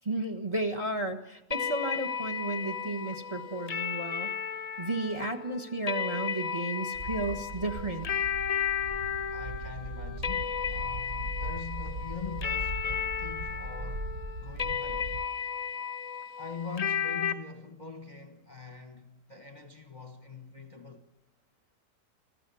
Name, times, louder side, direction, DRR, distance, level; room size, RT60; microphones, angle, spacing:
voice 1, 0.0-4.3 4.8-8.1, right 2 dB, 20° right, 1.2 m, -33 dB
sound 1, 1.5-17.3, left 7 dB, 55° left, 0.4 m, -34 dB
sound 2, 6.9-15.3, right 1 dB, 65° right, 0.4 m, -39 dB
voice 2, 9.3-14.1 14.4-15.2 16.4-21.1, left 5 dB, 30° left, 1.1 m, -43 dB
27.5 x 14.5 x 7.0 m
omnidirectional pair, 1.9 m